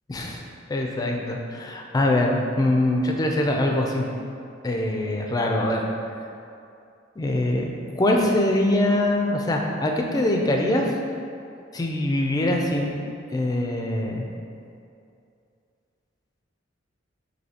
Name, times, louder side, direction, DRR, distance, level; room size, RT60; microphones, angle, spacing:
voice 1, 0.1-0.4 0.7-4.1 4.6-5.9 7.2-11.0 11.7-13.0 13.3-14.3, left 1 dB, 20° left, 1 dB, 0.4 m, -23 dB
6.2 x 2.7 x 2.8 m, 2.5 s
head